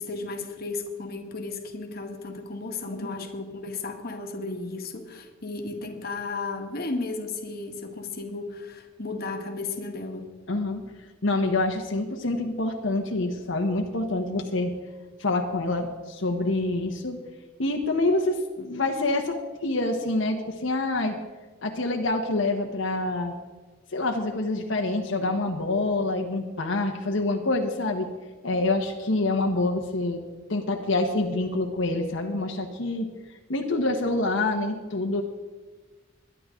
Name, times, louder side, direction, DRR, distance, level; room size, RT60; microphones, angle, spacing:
voice 1, 0.0-10.3, left 3 dB, 55° left, 4 dB, 1.6 m, -34 dB
voice 2, 10.5-10.8 11.2-14.7 15.2-17.2 17.6-21.2 21.6-23.3 23.9-28.1 28.4-30.2 30.5-33.1 33.5-35.2, left 2 dB, 80° left, 2 dB, 1.3 m, -26 dB
21.5 x 11.0 x 3.8 m, 1.3 s
head